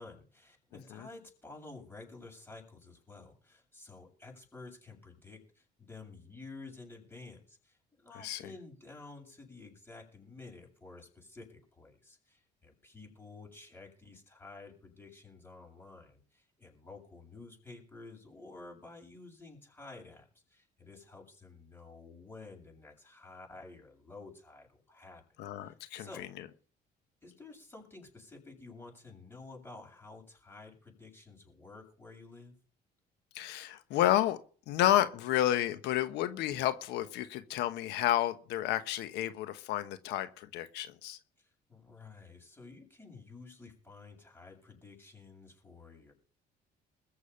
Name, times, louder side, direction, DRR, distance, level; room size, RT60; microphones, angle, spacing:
voice 1, 0.0-25.2 25.6-26.3 27.2-32.6 41.4-46.1, left 3 dB, 10° left, 0 dB, 7.8 m, -51 dB
voice 2, 25.4-26.1 33.3-34.4 34.7-41.2, left 13 dB, 90° left, 12 dB, 1.2 m, -31 dB
21.0 x 7.1 x 5.8 m, 0.41 s
cardioid pair, 110°, 17 cm